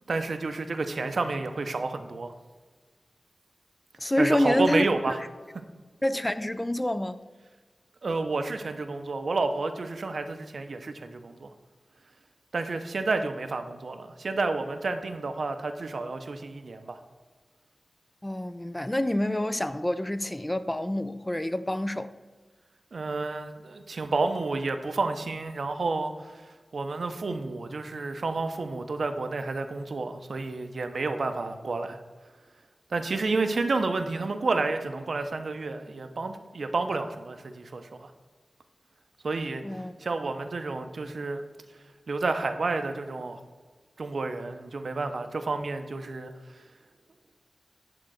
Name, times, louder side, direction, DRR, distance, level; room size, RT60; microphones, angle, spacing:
voice 1, 0.1-2.3 4.2-5.2 8.0-11.5 12.5-17.0 22.9-26.4 26.7-32.0 32.9-38.1 39.2-39.6 40.0-41.4 42.1-43.4 44.0-46.3, right 3 dB, 70° right, 0.7 m, -30 dB
voice 2, 4.0-4.8 6.0-7.2 18.2-22.1 39.6-39.9, left 1 dB, 15° left, 0.3 m, -27 dB
9.8 x 3.8 x 6.3 m
wide cardioid pair, 95°, 0 cm